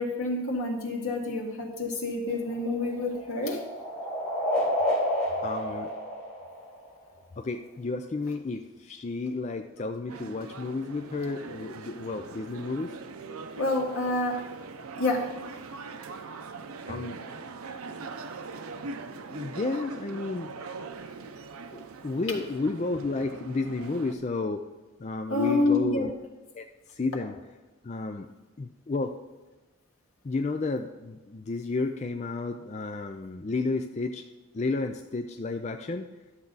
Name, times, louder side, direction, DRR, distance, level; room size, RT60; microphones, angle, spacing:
voice 1, 0.0-3.6 13.6-14.4 15.0-15.2 25.3-26.1, left 2 dB, 80° left, 0 dB, 1.9 m, -28 dB
sound 1, 2.3-7.1, left 1 dB, 5° left, 3.8 m, -30 dB
voice 2, 5.4-5.9 7.4-13.0 14.8-14.9 16.9-17.3 18.8-20.5 21.7-24.7 25.0-26.1 26.5-27.4 27.8-28.3 28.6-29.1 30.2-34.3 34.5-36.1, left 3 dB, 30° left, 5 dB, 0.4 m, -32 dB
sound 2, 10.1-24.1, right 4 dB, 90° right, 0.6 m, -41 dB
11.5 x 7.3 x 4.0 m, 1.2 s
head